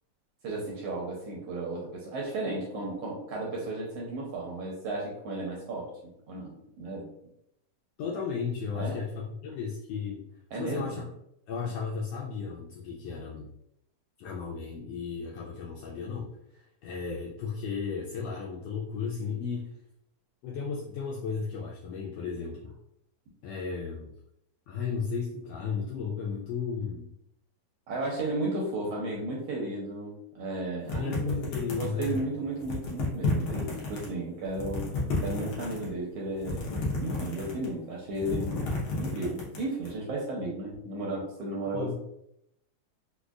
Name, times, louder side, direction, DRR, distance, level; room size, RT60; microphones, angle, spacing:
voice 1, 0.4-5.9 6.3-7.1 8.7-9.0 10.5-11.1 27.9-31.4 31.7-34.9 35.2-38.6 39.0-41.9, right 2 dB, 75° right, -3 dB, 1.5 m, -34 dB
voice 2, 8.0-10.2 10.5-11.1 11.5-13.5 14.2-19.7 20.4-22.7 23.4-24.1 24.7-27.1 31.0-32.3 41.7-41.9, left 5 dB, 90° left, -2 dB, 1.4 m, -34 dB
sound 1, 30.9-32.2 32.6-34.1 34.4-35.9 36.4-37.8 38.1-39.9, left 2 dB, 70° left, 1.2 m, -32 dB
4.8 x 2.2 x 2.4 m, 0.78 s
omnidirectional pair, 3.4 m